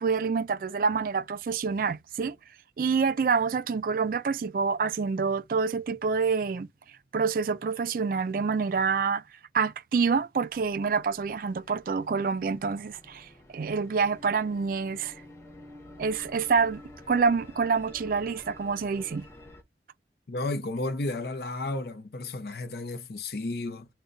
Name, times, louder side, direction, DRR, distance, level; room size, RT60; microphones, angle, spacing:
voice 1, 0.0-2.3 2.8-6.7 7.1-9.2 9.5-15.1 16.0-16.8 17.1-19.2, right 5 dB, 50° right, 0.3 m, -27 dB
sound 1, 10.5-19.6, left 1 dB, 15° left, 0.8 m, -50 dB
voice 2, 20.3-23.9, left 2 dB, 60° left, 0.6 m, -33 dB
3.8 x 2.2 x 3.8 m
head